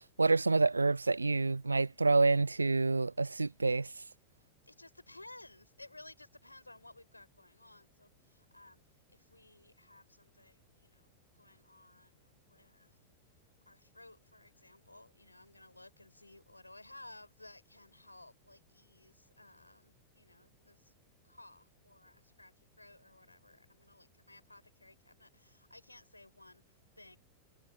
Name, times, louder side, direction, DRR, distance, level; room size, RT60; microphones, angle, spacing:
voice 1, 0.2-3.9, right 3 dB, 80° right, 0.5 m, -28 dB
voice 2, 4.6-8.8 9.1-11.1 11.4-13.0 13.7-20.9 21.2-27.2, left 2 dB, 85° left, 7.1 m, -57 dB
figure-of-eight pair, 90°, 0 cm